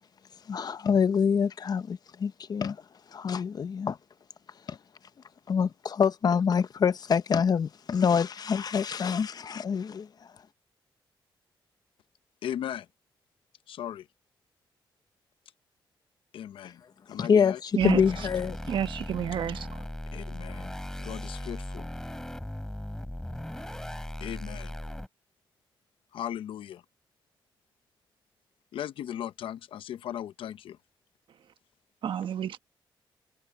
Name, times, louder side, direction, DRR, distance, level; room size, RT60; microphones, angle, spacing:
voice 1, 0.5-2.8 3.1-4.0 4.7-4.8 5.5-10.1 17.2-18.6, left 6 dB, 50° left, 0.8 m, -26 dB
voice 2, 12.4-12.9 13.7-14.1 16.3-16.8 17.1-17.6 20.1-21.9 24.2-24.8 26.1-26.8 28.7-30.8, left 10 dB, 85° left, 0.8 m, -37 dB
sound 1, 17.8-25.1, left 1 dB, 5° left, 4.1 m, -38 dB
voice 3, 17.8-18.3 18.7-19.8 32.0-32.6, right 9 dB, 70° right, 1.2 m, -30 dB
cardioid pair, 100°, 9 cm